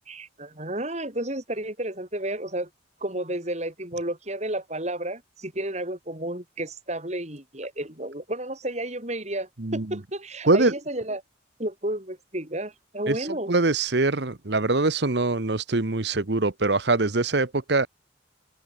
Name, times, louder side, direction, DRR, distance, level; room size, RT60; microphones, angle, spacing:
voice 1, 0.1-2.7 3.0-11.2 11.6-13.5, right 1 dB, 35° right, 6.3 m, -32 dB
voice 2, 13.5-17.9, right 3 dB, 60° right, 1.2 m, -23 dB
open air
head